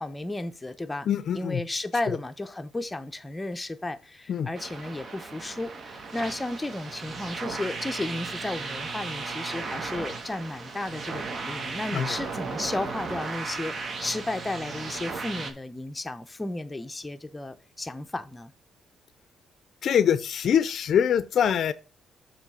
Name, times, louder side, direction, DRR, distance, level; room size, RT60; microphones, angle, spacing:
voice 1, 0.0-1.1 1.3-18.5, left 2 dB, 15° left, 0.7 m, -33 dB
voice 2, 1.1-1.6 2.0-2.2 4.3-4.5 11.9-12.2 19.8-21.7, left 8 dB, 65° left, 0.5 m, -24 dB
sound 1, 4.5-15.5, right 4 dB, 45° right, 1.1 m, -36 dB
7.2 x 3.2 x 5.5 m
cardioid pair, 90°, 0 cm